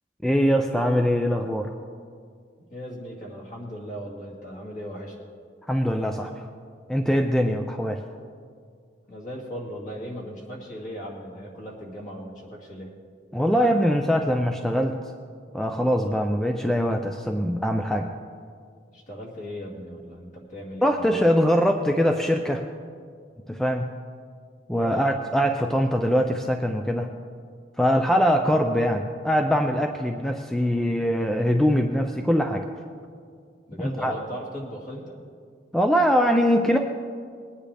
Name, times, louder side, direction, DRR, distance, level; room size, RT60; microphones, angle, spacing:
voice 1, 0.2-1.7 5.7-6.5 6.9-8.0 13.3-14.9 15.5-18.1 20.8-22.6 23.5-23.9 24.7-27.1 27.8-32.7 33.8-34.1 35.7-36.8, equal, 5° left, 4 dB, 0.4 m, -22 dB
voice 2, 2.7-5.2 9.1-12.9 18.9-21.2 24.9-25.1 33.7-35.2, equal, 45° left, -3 dB, 2.4 m, -37 dB
20.5 x 9.8 x 3.4 m, 2.2 s
head